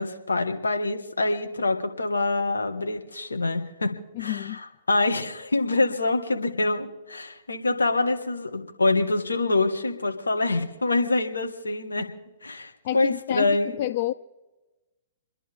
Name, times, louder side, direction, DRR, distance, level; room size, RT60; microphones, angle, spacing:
voice 1, 0.0-3.9 4.2-4.6 4.9-12.1 12.4-13.8, left 2 dB, 85° left, 1.6 m, -25 dB
voice 2, 4.1-4.6 12.8-14.1, left 14 dB, 50° left, 0.4 m, -29 dB
29.0 x 11.0 x 3.5 m
figure-of-eight pair, 115°, 0 cm